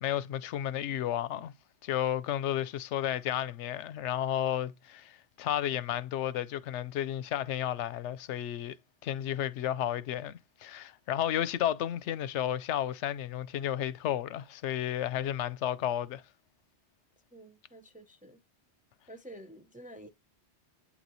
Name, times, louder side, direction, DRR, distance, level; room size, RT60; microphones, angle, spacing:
voice 1, 0.0-1.5 1.8-8.7 9.0-16.2, left 11 dB, 85° left, 0.9 m, -32 dB
voice 2, 17.3-18.4 19.1-20.1, right 1 dB, 10° right, 0.5 m, -49 dB
8.6 x 3.0 x 4.0 m
omnidirectional pair, 1.2 m